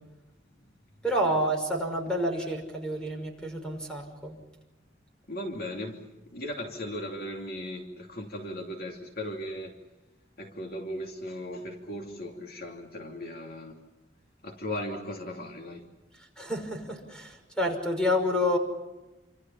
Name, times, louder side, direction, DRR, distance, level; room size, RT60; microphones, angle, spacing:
voice 1, 1.0-4.4 16.4-18.6, equal, 5° left, 3 dB, 5.9 m, -29 dB
voice 2, 5.3-6.0 6.3-9.8 10.4-13.8 14.4-15.9, left 1 dB, 55° left, 2 dB, 3.0 m, -37 dB
29.0 x 26.5 x 5.8 m, 1.0 s
head